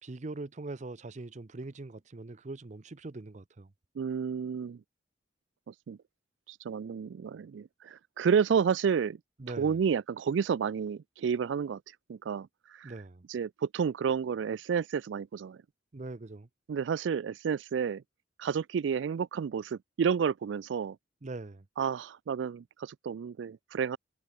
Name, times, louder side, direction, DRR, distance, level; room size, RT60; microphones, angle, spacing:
voice 1, 0.0-3.7 9.4-9.8 12.8-13.2 15.9-16.5 21.2-21.6, right 2 dB, 40° right, 0.7 m, -42 dB
voice 2, 4.0-4.8 5.7-6.0 6.5-9.2 9.5-12.9 13.3-15.6 16.7-18.0 18.4-21.0 21.8-24.0, right 7 dB, 85° right, 0.4 m, -31 dB
head